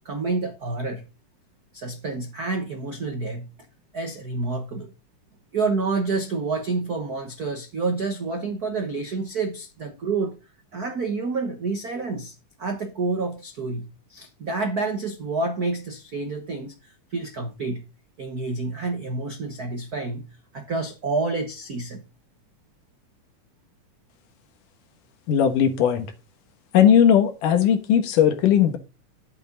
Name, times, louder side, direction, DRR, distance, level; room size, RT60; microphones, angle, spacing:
voice 1, 0.0-1.1 1.7-3.5 3.9-4.9 5.5-10.4 10.7-17.8 18.2-20.3 20.5-22.0, right 3 dB, 75° right, 0.8 m, -28 dB
voice 2, 25.3-26.1 26.7-28.8, left 9 dB, 80° left, 2.9 m, -18 dB
11.5 x 8.1 x 4.0 m
omnidirectional pair, 3.6 m